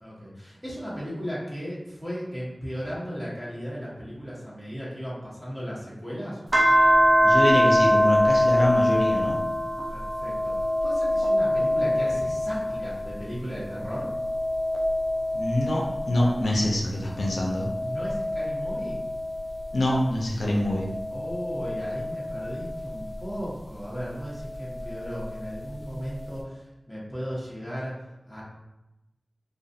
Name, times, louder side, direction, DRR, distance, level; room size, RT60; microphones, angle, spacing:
voice 1, 0.0-6.4 9.9-14.1 17.8-19.0 21.1-28.4, equal, 10° left, -8 dB, 1.0 m, -36 dB
sound 1, 6.5-13.2 13.7-16.6 17.2-20.0 20.7-23.2 24.5-25.6, left 1 dB, 40° right, 0.4 m, -25 dB
voice 2, 7.2-9.4 15.3-17.7 19.7-20.9, left 1 dB, 80° left, -3 dB, 0.4 m, -25 dB
2.3 x 2.3 x 2.6 m, 0.96 s
wide cardioid pair, 70°, 0 cm